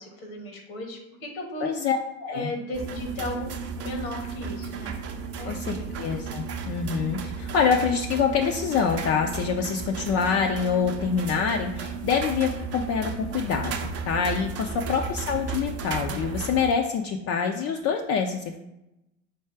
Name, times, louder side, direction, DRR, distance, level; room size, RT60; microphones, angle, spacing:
voice 1, 0.0-1.7 2.3-4.9 5.4-6.1 14.7-14.8, left 1 dB, 80° left, 2 dB, 1.2 m, -36 dB
voice 2, 1.6-2.5 5.4-18.6, left 6 dB, 40° left, 3 dB, 0.4 m, -26 dB
sound 1, 2.7-16.7, right 5 dB, 35° right, 0.6 m, -34 dB
4.7 x 2.3 x 4.5 m, 0.92 s
hypercardioid pair, 80°, 40 cm